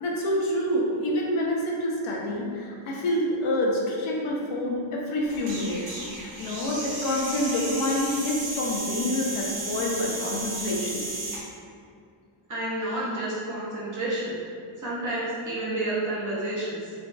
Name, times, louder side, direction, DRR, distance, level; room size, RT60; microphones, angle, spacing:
voice 1, 0.0-5.8 6.4-11.1, left 1 dB, 75° left, -2 dB, 0.6 m, -27 dB
sound 1, 5.3-11.4, right 2 dB, 70° right, 0.9 m, -34 dB
voice 2, 12.5-14.3 14.8-16.9, right 1 dB, 40° right, -7 dB, 0.5 m, -30 dB
2.5 x 2.3 x 2.2 m, 2.3 s
wide cardioid pair, 175°, 50 cm